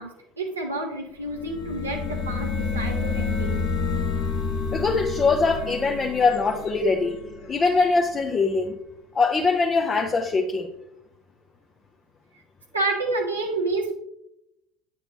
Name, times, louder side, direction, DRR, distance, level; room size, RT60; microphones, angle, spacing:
voice 1, 0.0-3.6 12.7-13.9, right 2 dB, 85° right, -1 dB, 0.9 m, -29 dB
sound 1, 1.2-8.0, left 5 dB, 50° left, 1.3 m, -29 dB
voice 2, 4.7-7.2 7.5-8.8 9.1-10.7, left 4 dB, 30° left, 3 dB, 0.8 m, -22 dB
8.8 x 6.4 x 2.9 m, 0.82 s
figure-of-eight pair, 65°, 0 cm